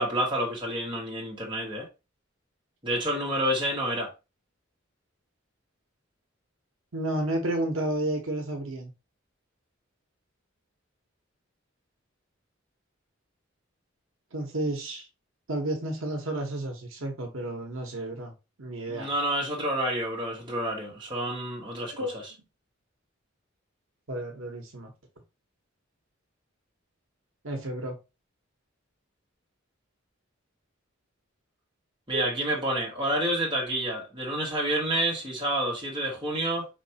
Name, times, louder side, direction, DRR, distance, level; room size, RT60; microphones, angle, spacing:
voice 1, 0.0-1.9 2.8-4.1 18.9-22.3 32.1-36.7, right 1 dB, 25° right, 1.7 m, -29 dB
voice 2, 6.9-8.9 14.3-15.0 15.5-18.3 18.6-19.1 22.0-22.2 24.1-24.9 27.4-28.0 32.1-32.3, right 1 dB, 80° right, 1.1 m, -31 dB
4.7 x 3.2 x 2.8 m
head